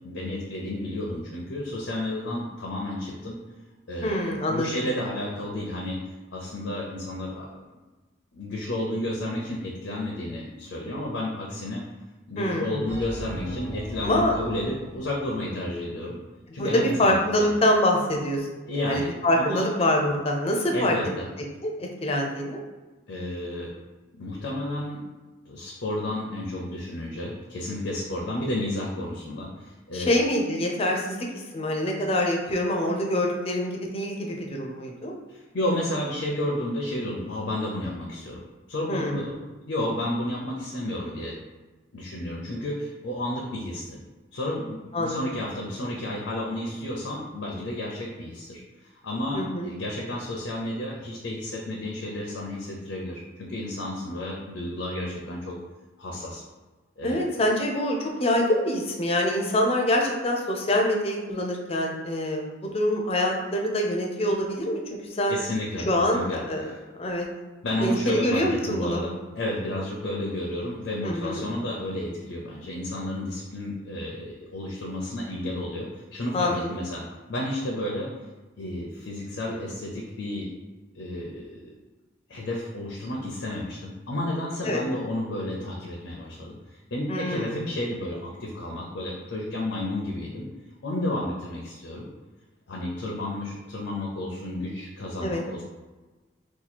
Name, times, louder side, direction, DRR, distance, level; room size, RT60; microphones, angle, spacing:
voice 1, 0.0-3.4 3.9-7.6 8.3-11.8 12.3-16.2 16.5-17.6 18.7-19.7 20.7-21.3 23.1-23.7 24.1-25.0 25.5-30.1 35.3-38.4 38.7-39.4 39.7-41.4 41.9-44.0 44.3-55.6 56.0-56.4 57.0-57.3 65.3-66.8 67.6-77.0 77.3-78.1 78.6-80.5 80.9-81.7 82.3-90.5 90.8-92.1 92.7-95.6, left 1 dB, 80° left, -2 dB, 0.5 m, -32 dB
voice 2, 4.0-4.7 12.4-12.8 14.0-14.3 16.5-21.0 21.6-22.6 29.9-35.1 38.9-39.3 44.9-45.2 49.3-49.7 57.0-64.8 65.1-65.4 65.9-66.7 67.0-67.3 67.8-69.0 71.0-71.5 76.3-76.7 84.6-84.8 87.1-87.6 95.2-95.4, left 1 dB, 30° left, 0 dB, 0.4 m, -25 dB
sound 1, 12.9-15.8, right 1 dB, 15° right, 0.7 m, -38 dB
2.8 x 2.3 x 4.1 m, 1.2 s
head